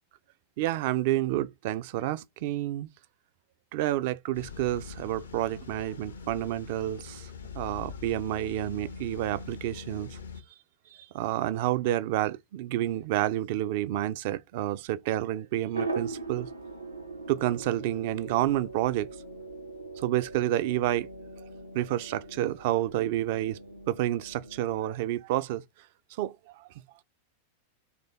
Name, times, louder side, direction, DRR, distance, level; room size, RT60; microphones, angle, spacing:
voice 1, 0.6-2.9 3.7-7.3 7.6-10.2 11.1-16.5 17.3-19.1 20.0-21.1 21.7-23.6 23.9-25.6 26.2-26.7, right 14 dB, 50° right, 0.3 m, -29 dB
sound 1, 4.3-10.4, left 5 dB, 70° left, 0.6 m, -43 dB
sound 2, 15.7-24.8, right 3 dB, 85° right, 0.7 m, -40 dB
3.1 x 2.6 x 4.2 m
figure-of-eight pair, 90°, 0 cm